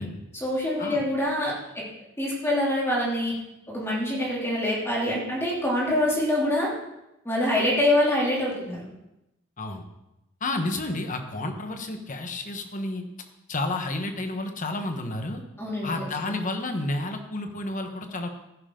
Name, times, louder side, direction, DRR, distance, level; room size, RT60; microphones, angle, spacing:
voice 1, 0.3-1.8 2.2-3.4 3.7-6.7 7.2-8.9 15.6-16.3, left 1 dB, 10° left, -5 dB, 3.1 m, -25 dB
voice 2, 10.4-13.0 13.5-15.4 15.8-18.3, left 2 dB, 40° left, 5 dB, 1.4 m, -31 dB
15.0 x 10.5 x 3.9 m, 0.91 s
head